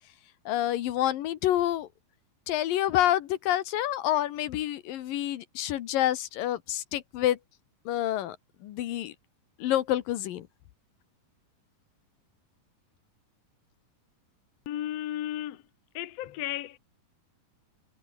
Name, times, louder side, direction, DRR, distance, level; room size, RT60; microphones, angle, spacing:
voice 1, 0.5-1.9 2.5-7.4 7.9-8.4 8.6-9.1 9.6-10.5, left 13 dB, 80° left, 2.9 m, -28 dB
voice 2, 14.7-15.6 15.9-16.8, left 12 dB, 60° left, 2.1 m, -34 dB
omnidirectional pair, 4.0 m